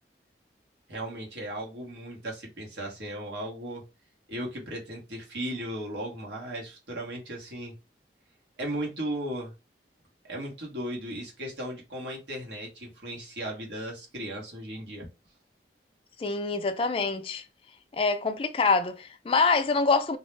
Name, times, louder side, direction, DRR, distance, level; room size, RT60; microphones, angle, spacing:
voice 1, 0.9-3.8 4.3-7.7 8.6-9.5 10.2-15.1, right 1 dB, 85° right, 1.0 m, -36 dB
voice 2, 16.2-17.4 17.9-20.2, left 4 dB, 30° left, 0.3 m, -25 dB
2.3 x 2.1 x 3.1 m
head